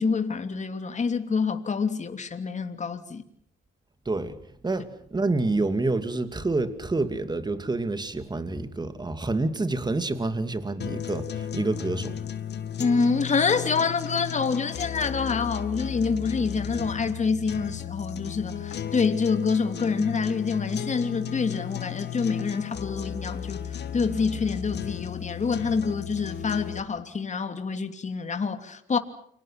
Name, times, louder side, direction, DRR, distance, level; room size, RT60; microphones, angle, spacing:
voice 1, 0.0-3.2 12.8-29.0, left 5 dB, 35° left, 3.0 m, -27 dB
voice 2, 4.1-4.4 4.6-12.1, right 2 dB, 20° right, 2.8 m, -28 dB
sound 1, 10.8-26.8, left 9 dB, 60° left, 2.1 m, -34 dB
29.5 x 25.5 x 6.0 m
cardioid pair, 90°, 20 cm